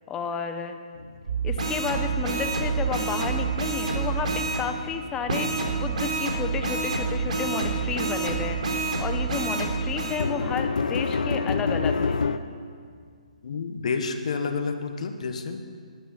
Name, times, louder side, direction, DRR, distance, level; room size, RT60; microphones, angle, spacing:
voice 1, 0.1-0.8 1.4-12.2, left 6 dB, 15° left, 7 dB, 0.8 m, -32 dB
sound 1, 1.0-2.7 2.9-12.4, left 4 dB, 80° left, 0.8 m, -31 dB
sound 2, 1.2-4.6 5.3-10.2, right 4 dB, 70° right, 3.3 m, -27 dB
voice 2, 13.4-15.6, left 4 dB, 65° left, 7 dB, 1.5 m, -29 dB
14.0 x 12.0 x 5.8 m, 2.1 s
hypercardioid pair, 150°, 4 cm